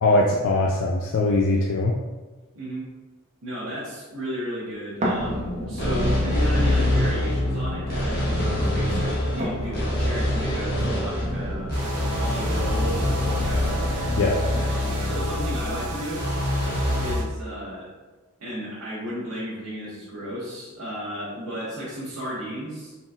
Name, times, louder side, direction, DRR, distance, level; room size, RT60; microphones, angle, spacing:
voice 1, 0.0-1.9 14.2-14.4, left 2 dB, 60° left, 0 dB, 0.4 m, -21 dB
voice 2, 2.5-2.9 3.4-11.7 12.2-13.9 14.7-16.3 17.0-17.9 18.4-22.9, equal, 70° right, -9 dB, 1.1 m, -34 dB
sound 1, 5.0-15.0 15.6-15.7, equal, 30° right, 0.8 m, -34 dB
sound 2, 5.2-17.1, left 1 dB, 45° left, 1.1 m, -25 dB
sound 3, 11.7-17.2, right 2 dB, 85° right, 0.5 m, -34 dB
4.0 x 3.8 x 2.4 m, 1.2 s
head